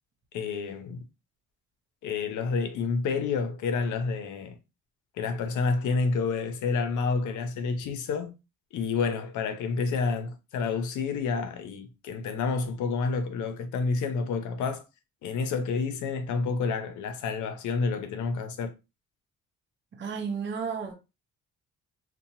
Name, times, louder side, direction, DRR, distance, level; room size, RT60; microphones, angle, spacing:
voice 1, 0.3-1.0 2.0-4.6 5.2-8.3 8.7-14.8 15.2-18.7, left 4 dB, 75° left, 0.6 m, -29 dB
voice 2, 20.0-20.9, right 6 dB, 40° right, 0.7 m, -32 dB
2.8 x 2.2 x 2.7 m
cardioid pair, 90°, 30 cm